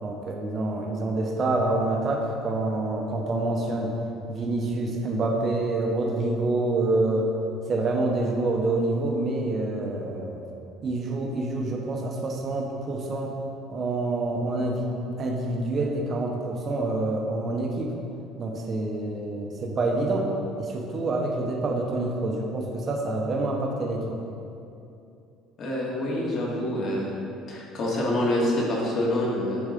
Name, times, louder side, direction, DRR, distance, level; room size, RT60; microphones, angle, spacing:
voice 1, 0.0-3.9 4.3-7.3 7.7-10.4 10.8-13.3 13.7-17.9 18.4-20.3 20.6-24.2, right 2 dB, 30° right, 1 dB, 0.7 m, -27 dB
voice 2, 25.6-27.0 27.5-29.6, left 1 dB, 35° left, -4 dB, 1.4 m, -26 dB
8.2 x 3.9 x 5.0 m, 2.7 s
cardioid pair, 180°, 0 cm